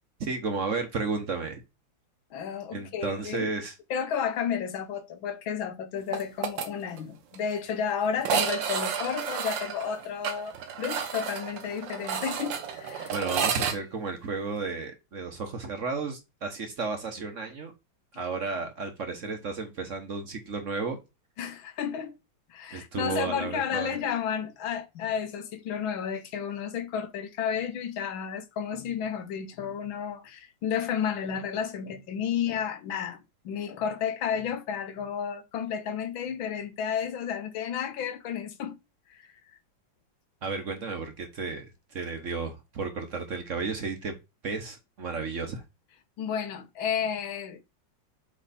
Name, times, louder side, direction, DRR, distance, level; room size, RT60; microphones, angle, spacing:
voice 1, 0.2-1.6 2.7-3.7 13.1-17.7 18.1-21.0 22.7-23.9 40.4-44.2 44.4-45.6, right 4 dB, 45° right, 1.2 m, -33 dB
voice 2, 2.3-3.5 3.9-13.1 21.4-22.1 22.5-33.2 33.5-38.8 39.1-39.2 46.2-47.6, left 7 dB, 85° left, 1.8 m, -32 dB
sound 1, 6.1-6.7 7.0-7.1 7.3-7.4 8.2-13.8, right 7 dB, 70° right, 1.7 m, -31 dB
7.6 x 3.2 x 4.2 m
omnidirectional pair, 2.1 m